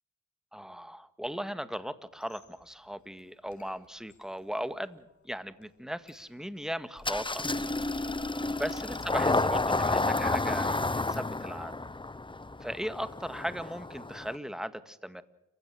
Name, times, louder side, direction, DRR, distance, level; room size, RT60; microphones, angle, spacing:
voice 1, 0.5-7.4 8.5-11.8 12.6-15.2, equal, ahead, 12 dB, 1.8 m, -37 dB
Squeak, 2.1-11.7, left 5 dB, 70° left, 5.1 m, -63 dB
Engine starting, 7.0-14.4, left 2 dB, 15° left, 0.9 m, -31 dB
29.5 x 16.0 x 6.3 m, 0.94 s
cardioid pair, 60°, 30 cm